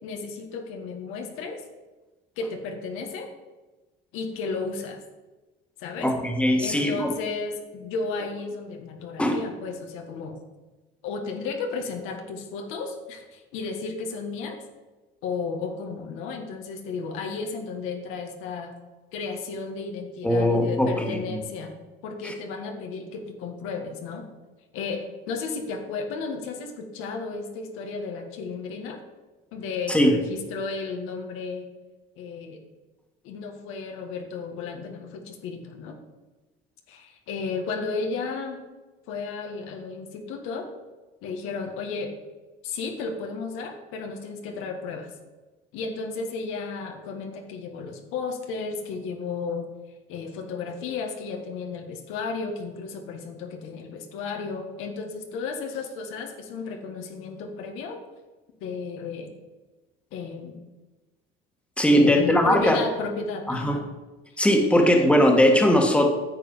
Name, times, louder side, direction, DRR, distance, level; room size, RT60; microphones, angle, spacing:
voice 1, 0.0-1.6 2.4-3.3 4.1-5.0 5.8-6.1 6.6-10.4 11.0-14.6 15.2-18.7 19.1-21.7 22.0-24.3 24.7-29.0 29.5-31.7 32.2-32.6 33.2-36.0 36.9-38.6 39.1-40.7 41.2-42.1 42.6-45.1 45.7-49.7 50.1-58.0 58.6-59.3 60.1-60.6 61.8-63.9 64.7-65.4, left 4 dB, 80° left, 4 dB, 1.7 m, -33 dB
voice 2, 6.0-7.1 9.2-9.4 20.2-21.2 22.2-22.3 29.9-30.1 61.8-62.8 63.5-63.8 64.4-66.1, equal, 5° left, 2 dB, 1.7 m, -20 dB
9.8 x 7.1 x 5.6 m, 1.2 s
cardioid pair, 105°, 21 cm